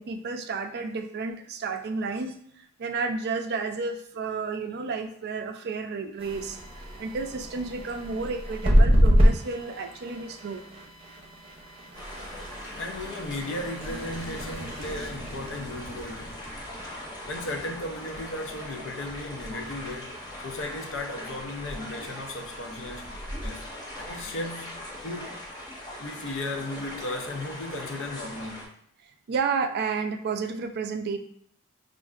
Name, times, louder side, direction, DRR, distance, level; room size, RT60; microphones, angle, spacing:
voice 1, 0.0-6.6 7.0-10.6 11.9-12.0 29.3-31.2, right 4 dB, 50° right, 0.4 m, -31 dB
sound 1, 6.2-16.9, equal, 25° right, 0.8 m, -27 dB
sound 2, 11.9-28.6, left 1 dB, 20° left, 0.9 m, -40 dB
voice 2, 12.8-16.5 17.3-23.7 24.0-25.4 26.0-28.7, left 2 dB, 60° left, 0.6 m, -36 dB
5.3 x 2.5 x 2.4 m
head